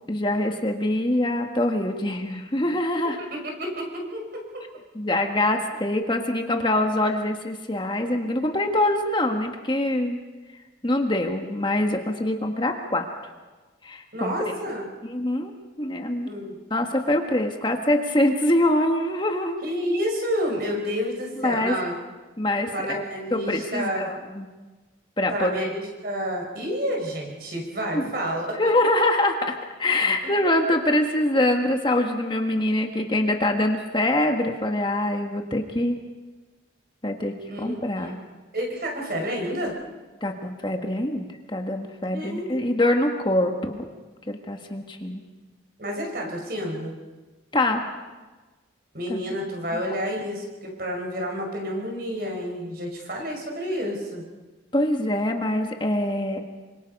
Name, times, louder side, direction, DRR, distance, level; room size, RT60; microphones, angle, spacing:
voice 1, 0.1-3.2 4.9-10.2 10.5-13.1 13.8-14.5 15.0-15.5 15.8-16.3 16.7-19.6 21.4-21.7 22.4-24.5 25.2-25.7 27.9-28.1 28.6-29.5 29.8-36.0 37.0-38.2 40.2-43.9 44.3-45.2 47.5-47.9 49.1-49.2 49.7-49.8 54.7-56.4, left 1 dB, 25° left, 3 dB, 1.6 m, -24 dB
voice 2, 3.3-4.4 14.1-14.9 16.3-16.6 19.6-21.9 22.7-24.1 25.3-28.8 37.5-38.1 38.5-39.7 42.0-42.4 45.8-46.9 48.9-54.2, equal, 55° right, 1 dB, 5.5 m, -29 dB
27.0 x 25.5 x 5.5 m, 1.3 s
head